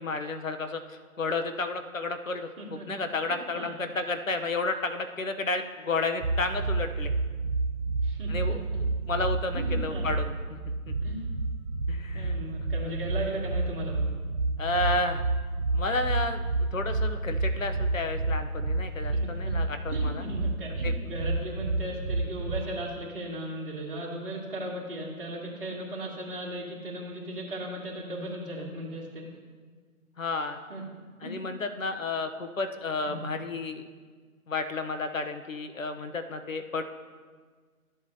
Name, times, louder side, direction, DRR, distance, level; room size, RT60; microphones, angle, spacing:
voice 1, 0.0-2.5 2.9-7.1 8.3-8.6 9.1-10.6 10.9-11.0 11.9-12.4 12.9-13.0 14.6-15.2 15.7-20.2 20.8-20.9 30.2-30.6 31.2-33.8 34.5-36.8, left 3 dB, 65° left, 7 dB, 0.8 m, -31 dB
voice 2, 2.6-2.9 3.3-3.7 8.0-8.8 9.5-10.1 11.0-11.3 11.9-14.1 19.1-19.6 19.9-29.3 30.4-30.8 31.2-31.4 33.0-33.2, right 1 dB, 40° right, -4 dB, 2.1 m, -37 dB
sound 1, 6.2-22.6, right 2 dB, 90° right, 1.1 m, -30 dB
13.0 x 7.5 x 2.7 m, 1.5 s
figure-of-eight pair, 165°, 44 cm